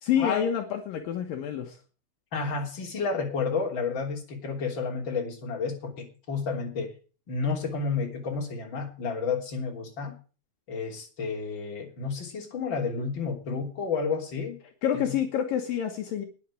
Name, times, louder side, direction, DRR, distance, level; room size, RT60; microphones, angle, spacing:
voice 1, 0.0-1.8 14.8-16.3, left 9 dB, 70° left, 4 dB, 2.8 m, -28 dB
voice 2, 2.3-6.9 7.3-10.2 10.7-14.6 14.9-15.2, left 5 dB, 30° left, 1 dB, 3.6 m, -31 dB
10.0 x 9.3 x 8.5 m, 0.37 s
omnidirectional pair, 4.3 m